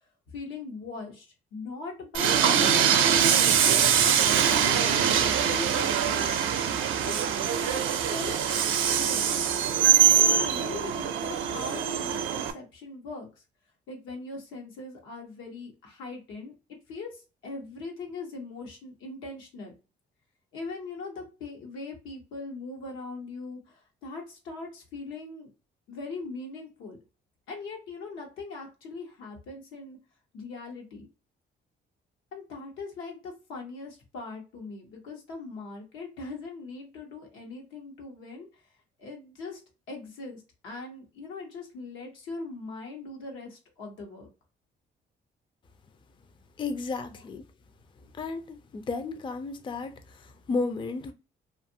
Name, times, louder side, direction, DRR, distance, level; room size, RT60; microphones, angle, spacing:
voice 1, 0.3-4.1 4.5-6.2 7.0-9.4 9.8-13.3 13.9-16.5 16.9-19.7 20.5-25.5 25.9-27.0 27.5-30.0 30.3-31.1 32.3-38.5 39.0-39.6 39.9-44.3, left 3 dB, 90° left, 1.0 m, -40 dB
Train, 2.1-12.5, right 8 dB, 80° right, 0.5 m, -23 dB
voice 2, 46.6-47.4 48.1-51.1, left 3 dB, 25° left, 0.4 m, -33 dB
2.5 x 2.4 x 2.7 m
cardioid pair, 90°, 20 cm